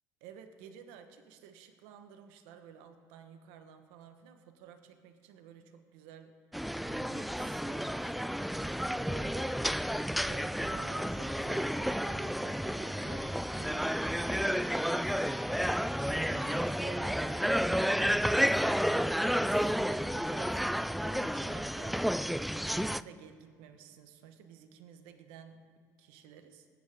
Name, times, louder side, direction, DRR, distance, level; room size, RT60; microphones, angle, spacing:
voice 1, 0.2-6.4 6.8-8.4 9.0-9.6 10.3-13.9 14.3-15.3 16.1-22.0 22.4-25.7 26.0-26.7, right 8 dB, 75° right, 7 dB, 1.3 m, -52 dB
sound 1, 6.5-23.0, equal, ahead, 0.3 m, -31 dB
22.0 x 9.5 x 3.7 m, 2.1 s
hypercardioid pair, 70°, 9 cm